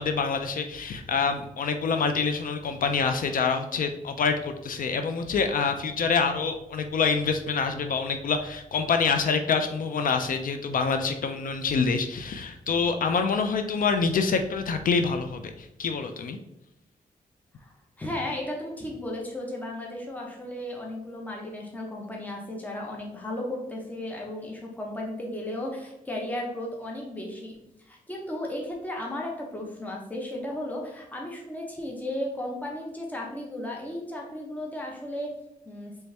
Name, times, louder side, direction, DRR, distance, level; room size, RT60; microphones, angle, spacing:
voice 1, 0.0-16.4, left 5 dB, 65° left, 7 dB, 0.4 m, -26 dB
voice 2, 17.6-27.6 27.8-35.3 35.7-35.9, left 1 dB, 10° left, -1 dB, 0.9 m, -35 dB
4.1 x 3.3 x 3.3 m, 0.83 s
cardioid pair, 95°, 15 cm